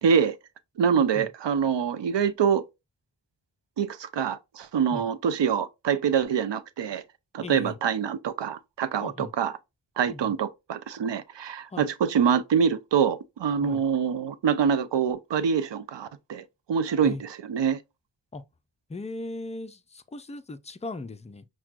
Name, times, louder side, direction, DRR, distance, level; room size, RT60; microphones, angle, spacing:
voice 1, 0.0-0.4 0.8-2.6 3.8-7.0 7.3-9.5 10.0-17.8, right 7 dB, 70° right, 0.6 m, -25 dB
voice 2, 0.9-1.3 4.9-5.1 7.4-7.8 9.0-9.3 10.1-10.2 11.7-11.9 13.6-13.8 17.0-17.2 18.3-18.4 18.9-21.5, left 2 dB, 15° left, 0.3 m, -38 dB
5.9 x 2.2 x 2.4 m
wide cardioid pair, 80°, 44 cm